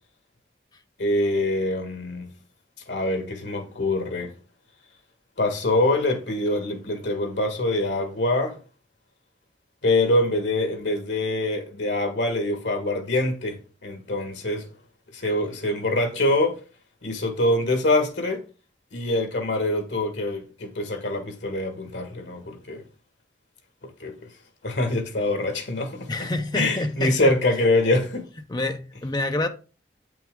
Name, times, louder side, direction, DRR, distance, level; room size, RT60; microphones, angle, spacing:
voice 1, 1.0-2.3 2.9-4.3 5.4-8.6 9.8-14.7 15.1-16.6 17.0-18.4 18.9-22.8 23.8-24.1 24.6-26.1 26.5-28.3, left 2 dB, 80° left, 1.9 m, -24 dB
voice 2, 26.1-27.3 28.5-29.5, left 2 dB, 20° left, 0.7 m, -27 dB
8.4 x 6.0 x 3.8 m
head